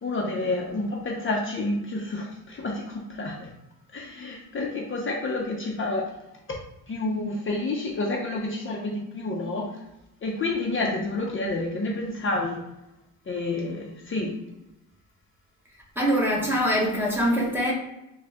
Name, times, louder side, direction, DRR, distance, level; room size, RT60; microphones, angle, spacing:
voice 1, 0.0-3.5 3.9-6.1 6.9-9.7 10.2-12.6 13.3-14.3, left 2 dB, 35° left, -1 dB, 0.7 m, -29 dB
voice 2, 16.0-17.7, equal, 5° right, -3 dB, 1.2 m, -23 dB
3.8 x 2.3 x 3.5 m, 0.92 s
cardioid pair, 85°, 36 cm